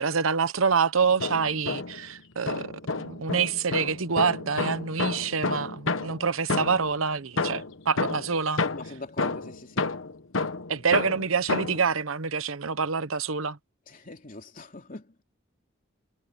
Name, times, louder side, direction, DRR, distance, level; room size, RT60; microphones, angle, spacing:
voice 1, 0.0-2.7 3.0-8.6 10.7-13.6, right 5 dB, 85° right, 1.0 m, -26 dB
sound 1, 1.0-2.1 2.5-7.0 7.4-11.9, left 3 dB, 75° left, 1.2 m, -30 dB
voice 2, 8.7-9.8 13.9-15.1, left 2 dB, 40° left, 3.2 m, -42 dB
head